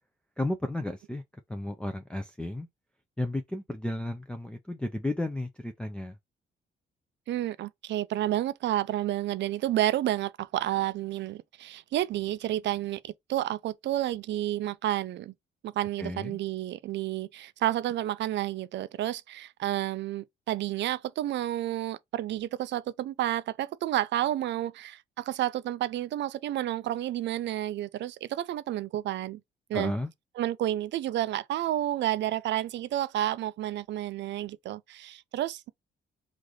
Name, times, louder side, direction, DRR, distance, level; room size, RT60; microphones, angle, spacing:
voice 1, 0.4-1.2 1.5-2.7 3.2-6.2 16.0-16.4 29.7-30.1, left 1 dB, 5° left, 0.4 m, -33 dB
voice 2, 7.3-15.3 15.6-29.4 29.7-29.9 30.4-35.7, right 13 dB, 65° right, 0.4 m, -30 dB
3.2 x 2.5 x 3.8 m
cardioid pair, 90°, 20 cm